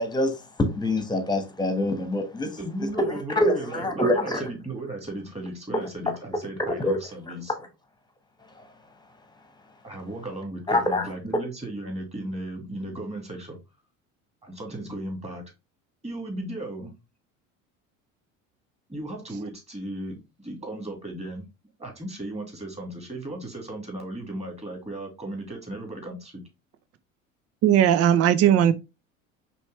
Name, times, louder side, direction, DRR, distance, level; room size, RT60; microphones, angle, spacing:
voice 1, 0.0-2.6 3.0-4.4 6.8-7.0 10.7-11.1, left 1 dB, 10° left, 1.3 m, -25 dB
voice 2, 2.6-7.5 9.8-13.6 14.4-15.4 16.0-16.9 18.9-21.4 21.8-26.4, right 1 dB, 15° right, 2.4 m, -36 dB
voice 3, 27.6-28.7, right 10 dB, 35° right, 0.6 m, -18 dB
5.3 x 3.2 x 3.1 m
hypercardioid pair, 70°, 42 cm